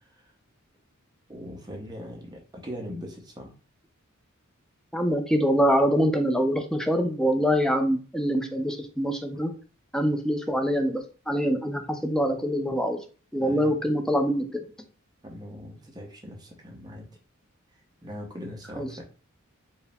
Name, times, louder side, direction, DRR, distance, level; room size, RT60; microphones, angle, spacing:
voice 1, 1.3-3.5 13.4-14.0 15.2-17.1 18.0-19.0, equal, 20° right, 1 dB, 0.8 m, -40 dB
voice 2, 4.9-9.5 9.9-13.0 13.3-14.6 18.8-19.0, equal, 5° left, 5 dB, 0.4 m, -25 dB
4.5 x 2.0 x 3.4 m, 0.37 s
head